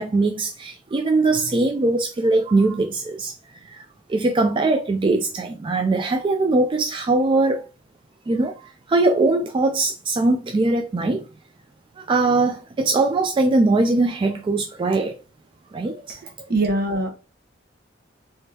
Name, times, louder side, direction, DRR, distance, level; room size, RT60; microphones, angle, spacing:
voice 1, 0.0-3.3 3.7-3.8 4.1-7.6 8.3-8.5 8.9-11.2 12.0-15.1 15.7-16.2, right 2 dB, 25° right, 0.3 m, -21 dB
voice 2, 16.5-17.1, right 2 dB, 55° right, 1.0 m, -21 dB
3.6 x 3.3 x 2.7 m
head